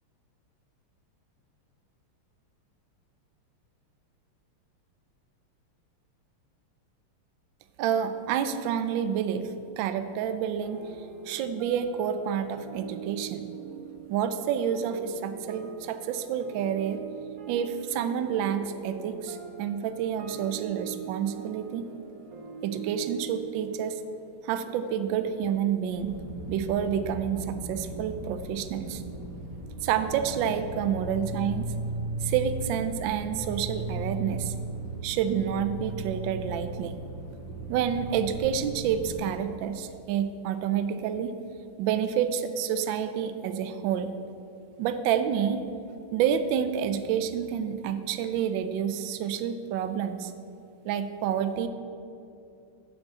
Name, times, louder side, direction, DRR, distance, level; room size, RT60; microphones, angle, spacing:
voice 1, 7.8-9.5 9.8-10.8 11.3-13.5 14.1-17.0 17.5-21.9 22.6-24.0 24.4-26.2 26.5-29.0 29.8-31.7 32.2-34.5 35.0-37.0 37.7-41.3 41.8-44.1 44.8-45.6 46.1-50.3 50.8-51.7, right 8 dB, 75° right, 9 dB, 1.2 m, -29 dB
sound 1, 10.6-27.4, right 7 dB, 55° right, 1.1 m, -43 dB
sound 2, 25.9-39.2, right 2 dB, 85° left, 2.4 m, -36 dB
7.2 x 6.1 x 7.3 m, 2.6 s
omnidirectional pair, 2.4 m